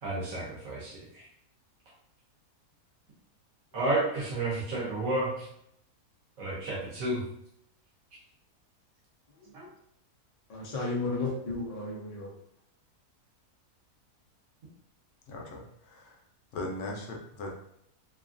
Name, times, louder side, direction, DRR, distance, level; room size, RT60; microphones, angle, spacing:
voice 1, 0.0-1.3 3.7-5.5 6.4-7.2 9.5-9.7 11.1-11.2, right 2 dB, 65° right, -4 dB, 1.1 m, -31 dB
voice 2, 10.5-12.3, left 2 dB, 90° left, -3 dB, 0.3 m, -34 dB
voice 3, 15.3-16.2 16.5-17.5, left 2 dB, 70° left, 0 dB, 0.8 m, -39 dB
2.9 x 2.3 x 2.4 m, 0.74 s
omnidirectional pair, 1.7 m